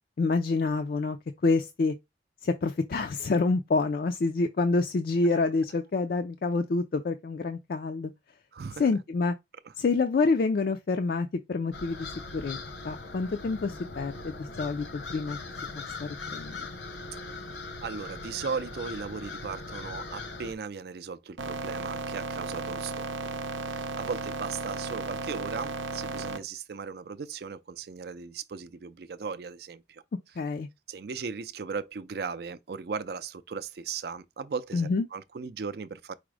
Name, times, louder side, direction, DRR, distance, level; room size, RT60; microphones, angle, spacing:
voice 1, 0.2-1.2 1.4-2.0 2.4-8.1 8.8-9.3 9.8-12.6 12.8-15.4 15.7-16.7 30.4-30.7 34.7-35.0, left 3 dB, 55° left, 0.3 m, -27 dB
voice 2, 8.5-8.9 17.8-23.4 23.6-30.0 30.9-36.1, right 5 dB, 55° right, 0.4 m, -37 dB
sound 1, 11.7-20.5, left 3 dB, 75° left, 0.9 m, -40 dB
sound 2, 21.4-26.4, right 3 dB, 90° right, 0.6 m, -35 dB
4.9 x 2.0 x 4.7 m
head